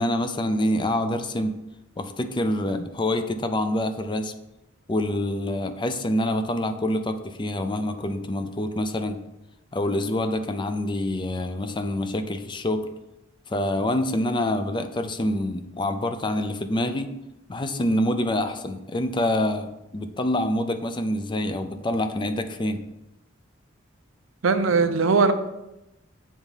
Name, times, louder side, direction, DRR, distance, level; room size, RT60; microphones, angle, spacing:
voice 1, 0.0-1.6 2.0-4.3 4.9-9.2 9.7-12.9 13.5-17.1 17.5-22.8, left 1 dB, 25° left, 8 dB, 0.5 m, -26 dB
voice 2, 24.4-25.3, right 4 dB, 80° right, 9 dB, 0.6 m, -19 dB
7.2 x 3.5 x 5.6 m, 0.93 s
head